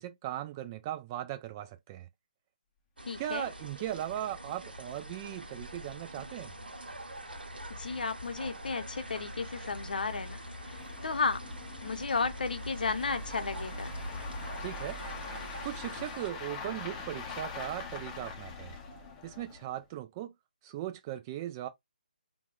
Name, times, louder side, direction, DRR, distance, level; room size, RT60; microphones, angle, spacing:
voice 1, 0.0-2.1 3.2-6.5 14.6-15.0 15.6-18.8 19.2-20.3 20.6-21.7, right 13 dB, 20° right, 0.3 m, -38 dB
sound 1, 3.0-16.3, equal, 80° right, 0.7 m, -44 dB
voice 2, 3.1-3.5 7.8-10.4 11.0-11.4 11.8-13.9, left 4 dB, 65° left, 0.7 m, -33 dB
sound 2, 3.8-3.9 4.3-4.4 4.7-4.8 5.4-19.8, left 3 dB, 15° left, 0.6 m, -44 dB
3.3 x 2.2 x 2.3 m
figure-of-eight pair, 145°, 5 cm